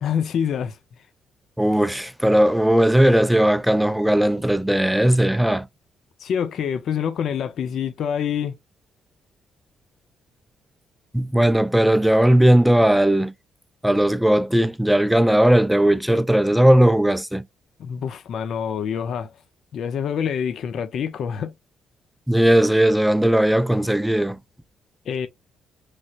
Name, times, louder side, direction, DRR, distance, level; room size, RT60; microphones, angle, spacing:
voice 1, 0.0-0.8 6.2-8.6 17.8-19.3 19.7-21.5 25.1-25.3, left 8 dB, 65° left, 0.5 m, -26 dB
voice 2, 1.6-5.7 11.1-13.3 13.8-17.4 22.3-24.4, right 1 dB, 5° right, 0.4 m, -17 dB
3.2 x 2.8 x 2.4 m
cardioid pair, 90°, 0 cm